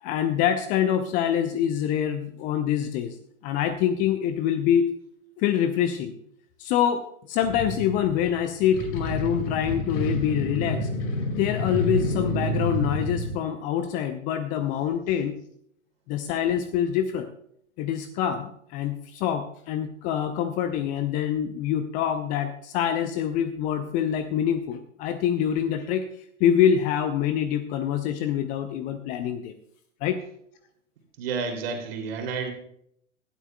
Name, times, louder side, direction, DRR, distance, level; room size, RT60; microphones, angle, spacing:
voice 1, 0.0-3.2 3.4-4.8 5.4-6.1 6.6-10.9 11.4-15.3 16.1-17.3 17.8-26.0 26.4-29.5 30.0-30.2, left 9 dB, 20° left, 10 dB, 0.5 m, -25 dB
sound 1, 7.4-13.3, left 1 dB, 40° left, 2.4 m, -29 dB
voice 2, 31.2-32.5, right 5 dB, 50° right, 4 dB, 2.9 m, -30 dB
18.0 x 12.0 x 2.3 m, 0.68 s
figure-of-eight pair, 100°, 39 cm